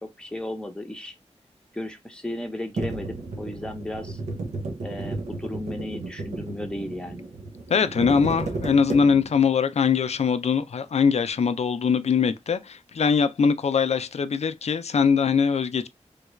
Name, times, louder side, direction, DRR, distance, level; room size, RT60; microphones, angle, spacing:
voice 1, 0.2-1.1 1.7-4.2 4.8-7.3, left 1 dB, 10° left, 0.8 m, -34 dB
sound 1, 2.8-9.5, right 3 dB, 85° right, 0.8 m, -33 dB
voice 2, 7.7-15.9, left 6 dB, 65° left, 0.4 m, -22 dB
3.2 x 2.3 x 3.1 m
wide cardioid pair, 80°, 12 cm